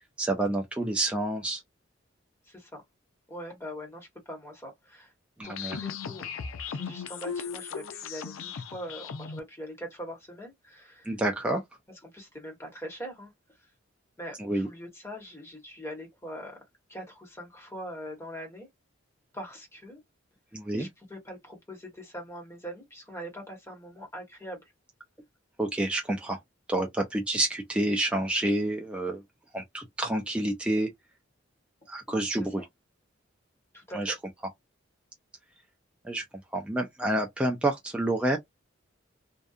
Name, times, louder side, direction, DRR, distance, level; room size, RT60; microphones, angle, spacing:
voice 1, 0.2-1.6 5.4-5.8 11.1-11.6 14.4-14.7 20.5-20.9 25.6-26.4 26.7-29.2 29.5-30.9 31.9-32.6 33.9-34.1 36.0-36.2 36.5-38.4, right 1 dB, 5° right, 0.4 m, -28 dB
voice 2, 2.4-2.8 3.3-5.1 5.4-6.3 6.7-11.1 12.0-13.3 14.2-16.6 16.9-18.7 19.3-20.0 20.8-24.7 33.7-34.1, equal, 15° left, 1.1 m, -42 dB
sound 1, 5.4-9.4, left 6 dB, 90° left, 0.5 m, -37 dB
2.7 x 2.2 x 2.4 m
head